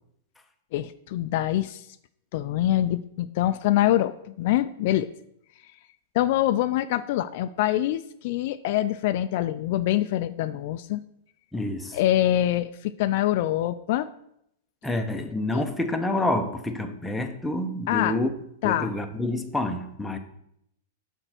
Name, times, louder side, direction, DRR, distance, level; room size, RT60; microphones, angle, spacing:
voice 1, 0.7-1.9 2.3-5.1 6.1-11.0 11.9-14.1 15.5-15.6 17.9-18.2 18.6-18.9, left 13 dB, 50° left, 0.3 m, -25 dB
voice 2, 11.5-12.0 14.8-18.3 18.6-20.2, left 1 dB, 5° left, 0.6 m, -28 dB
6.6 x 4.4 x 6.0 m
hypercardioid pair, 145°, 0 cm